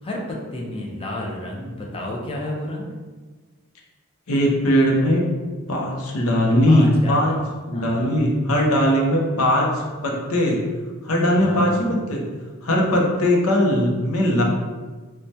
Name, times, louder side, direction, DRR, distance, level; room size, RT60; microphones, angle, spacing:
voice 1, 0.0-2.9 6.7-7.3 7.7-8.2 11.4-11.8, left 1 dB, 25° left, -2 dB, 0.4 m, -31 dB
voice 2, 4.3-5.2 5.7-7.4 7.7-10.6 11.0-12.2 12.6-14.4, equal, 80° left, -1 dB, 0.6 m, -19 dB
3.2 x 2.1 x 2.7 m, 1.3 s
head